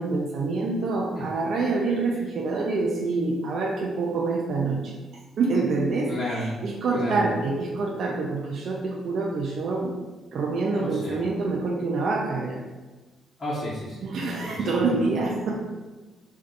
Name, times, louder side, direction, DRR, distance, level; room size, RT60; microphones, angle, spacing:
voice 1, 0.0-4.9 5.4-10.0 10.3-12.6 14.0-15.7, right 3 dB, 65° right, -1 dB, 0.4 m, -26 dB
voice 2, 6.1-6.5 6.9-7.2 10.8-11.2 13.4-14.0 14.4-14.9, left 1 dB, 35° left, -10 dB, 1.0 m, -32 dB
2.5 x 2.3 x 3.9 m, 1.2 s
cardioid pair, 90°, 0 cm